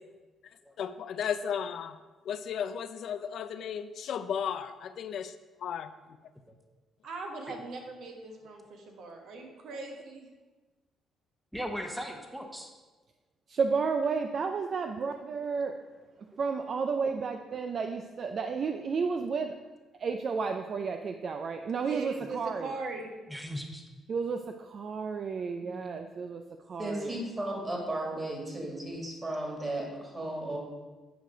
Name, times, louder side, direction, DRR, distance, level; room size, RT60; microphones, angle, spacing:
voice 1, 0.8-2.0 2.3-5.3 5.6-5.9, left 8 dB, 65° left, 11 dB, 0.4 m, -34 dB
voice 2, 7.0-10.3 21.8-23.2, right 3 dB, 70° right, 2 dB, 1.4 m, -40 dB
voice 3, 11.5-12.7 16.8-17.4 23.3-23.8 25.6-26.0, equal, 5° right, 4 dB, 1.0 m, -39 dB
voice 4, 13.5-15.7 16.4-19.5 20.0-22.7 24.1-26.4 26.7-27.2, right 5 dB, 50° right, 6 dB, 0.4 m, -32 dB
voice 5, 26.8-30.6, right 1 dB, 25° right, 0 dB, 2.4 m, -35 dB
9.1 x 4.9 x 5.1 m, 1.2 s
cardioid pair, 95°, 0 cm